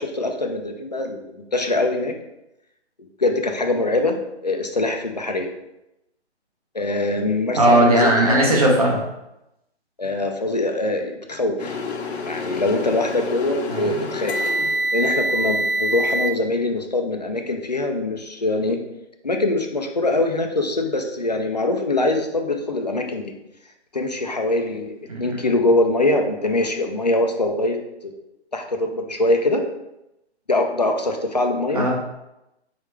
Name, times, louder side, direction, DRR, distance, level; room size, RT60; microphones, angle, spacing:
voice 1, 0.0-2.1 3.2-5.5 6.7-8.4 10.0-11.8 12.2-14.3 14.9-18.8 19.2-23.3 23.9-24.9 25.2-27.8 28.5-29.6 30.5-31.8, left 2 dB, 40° left, 4 dB, 0.4 m, -23 dB
voice 2, 7.6-9.0 13.7-14.0 25.1-25.5 31.7-31.9, right 1 dB, 35° right, -2 dB, 0.9 m, -18 dB
sound 1, 11.6-16.3, equal, 70° left, 0.8 m, -25 dB
4.5 x 3.4 x 3.2 m, 0.89 s
hypercardioid pair, 170°, 34 cm